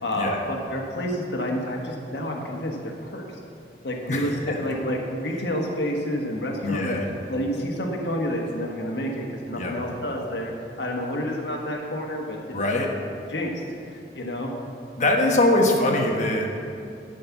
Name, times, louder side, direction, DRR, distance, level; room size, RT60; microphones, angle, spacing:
voice 1, 0.0-3.2 3.8-7.0 7.3-12.4 13.3-13.5 13.9-14.5, equal, 75° left, 0 dB, 1.3 m, -29 dB
voice 2, 4.1-4.6 6.6-7.1 9.6-9.7 12.5-12.9 15.0-16.6, left 1 dB, 40° left, 1 dB, 1.2 m, -22 dB
12.0 x 5.2 x 7.2 m, 2.5 s
head